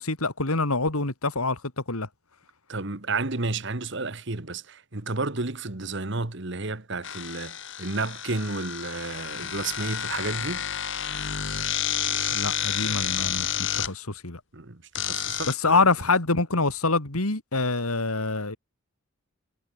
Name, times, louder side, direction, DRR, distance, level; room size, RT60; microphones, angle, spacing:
voice 1, 0.0-1.6 1.9-2.1 12.3-14.4 15.5-18.6, left 3 dB, 80° left, 3.1 m, -25 dB
voice 2, 2.7-10.7 14.5-15.8, right 3 dB, 55° right, 1.5 m, -31 dB
sound 1, 7.0-13.9 15.0-15.6, left 10 dB, 55° left, 2.2 m, -30 dB
head